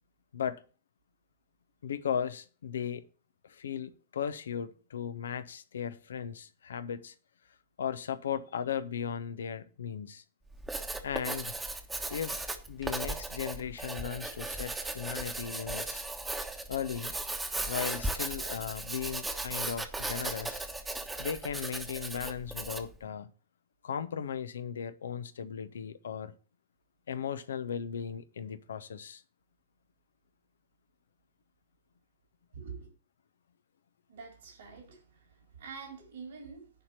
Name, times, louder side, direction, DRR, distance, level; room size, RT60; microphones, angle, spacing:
voice 1, 1.8-3.0 3.4-7.1 7.8-10.2 11.0-11.5 12.1-16.0 16.7-17.1 17.7-20.6 21.2-23.3 23.8-26.3 27.1-29.2, left 8 dB, 65° left, 0.8 m, -36 dB
Writing, 10.5-23.0, right 2 dB, 10° right, 1.3 m, -37 dB
voice 2, 32.5-32.9 34.1-36.7, right 5 dB, 70° right, 3.7 m, -46 dB
10.5 x 4.3 x 6.9 m
figure-of-eight pair, 90°, 0 cm